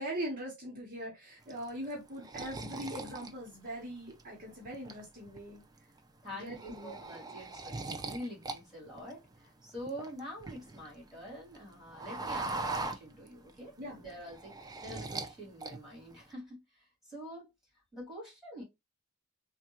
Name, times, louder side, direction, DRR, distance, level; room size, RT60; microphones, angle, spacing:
voice 1, 0.0-5.6 6.3-7.0 13.8-14.0, right 1 dB, 40° right, 1.0 m, -41 dB
sound 1, 1.5-4.2 4.7-5.4 5.8-6.0 6.3-8.6 8.9-10.9 11.3-13.6 13.9-15.3 15.6-16.2, right 3 dB, 20° right, 0.4 m, -40 dB
voice 2, 6.2-17.5 17.9-18.6, equal, ahead, 2.2 m, -46 dB
3.5 x 2.3 x 2.8 m
head